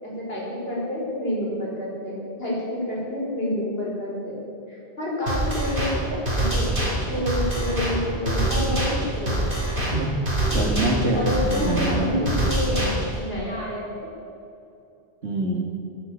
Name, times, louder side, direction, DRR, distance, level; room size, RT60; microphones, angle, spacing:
voice 1, 0.0-4.4 4.7-6.8 7.1-9.4 11.1-14.1, left 1 dB, 65° left, -4 dB, 5.1 m, -28 dB
sound 1, 5.3-13.2, right 1 dB, 50° right, 3.9 m, -25 dB
voice 2, 10.5-12.4 15.2-15.7, right 2 dB, 85° right, 2 dB, 2.3 m, -25 dB
13.0 x 12.5 x 8.4 m, 2.7 s
omnidirectional pair, 1.1 m